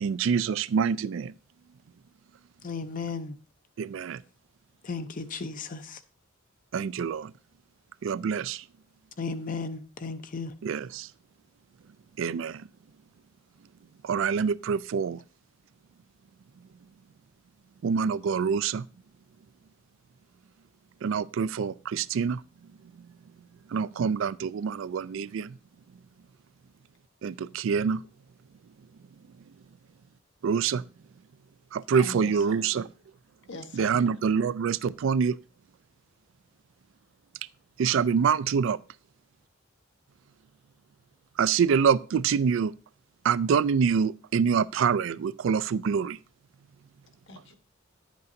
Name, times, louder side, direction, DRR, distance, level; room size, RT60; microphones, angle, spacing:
voice 1, 0.0-1.3 3.8-4.2 6.7-7.3 8.0-8.6 10.6-11.1 12.2-12.6 14.0-15.2 17.8-18.8 21.0-22.4 23.7-25.5 27.2-28.0 30.4-30.8 31.7-32.9 33.8-35.4 37.8-38.8 41.4-42.7 43.2-46.2, right 6 dB, 65° right, 0.3 m, -26 dB
voice 2, 2.6-3.4 4.8-6.0 9.2-10.5, left 4 dB, 40° left, 0.5 m, -35 dB
voice 3, 31.9-32.7 33.5-34.0 47.3-47.5, left 3 dB, 60° left, 1.2 m, -42 dB
10.5 x 8.2 x 2.6 m
head